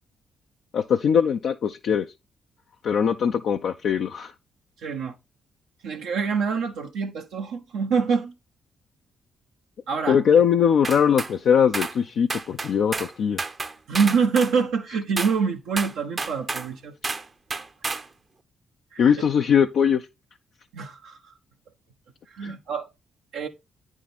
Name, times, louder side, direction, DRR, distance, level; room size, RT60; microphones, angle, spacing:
voice 1, 0.7-2.1 2.8-4.3 10.1-13.4 19.0-20.0 22.4-22.5, left 7 dB, 65° left, 0.4 m, -21 dB
voice 2, 4.8-5.2 5.8-8.3 9.9-10.2 13.9-17.0 18.9-19.0 20.7-21.2 22.3-22.9 23.3-23.5, right 5 dB, 70° right, 0.7 m, -25 dB
sound 1, 10.8-11.3 11.7-12.0 12.3-13.1 13.4-14.5 15.2-15.4 15.8-16.7 17.0-17.3 17.5-18.1, right 3 dB, 35° right, 0.7 m, -30 dB
9.1 x 3.6 x 4.2 m
hypercardioid pair, 45°, 0 cm